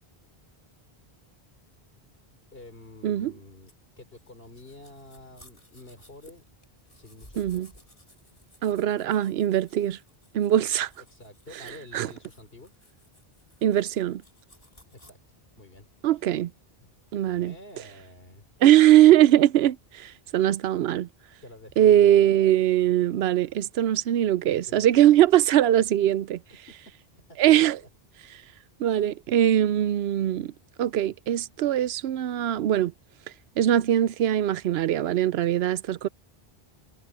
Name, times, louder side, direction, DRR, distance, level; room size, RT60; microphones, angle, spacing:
voice 1, 2.5-6.4 6.9-7.7 11.1-12.7 14.9-16.2 17.2-18.4 21.4-22.3 24.4-24.9 28.9-29.1, left 2 dB, 70° left, 3.8 m, -49 dB
sound 1, 3.7-15.1, left 1 dB, 35° left, 4.8 m, -57 dB
voice 2, 7.4-7.7 8.6-10.0 10.3-10.9 11.9-12.1 13.6-14.2 16.0-16.5 17.1-17.5 18.6-21.1 21.8-26.4 27.4-27.8 28.8-30.5 30.8-32.9 33.6-36.1, right 12 dB, 85° right, 0.8 m, -21 dB
omnidirectional pair, 1.0 m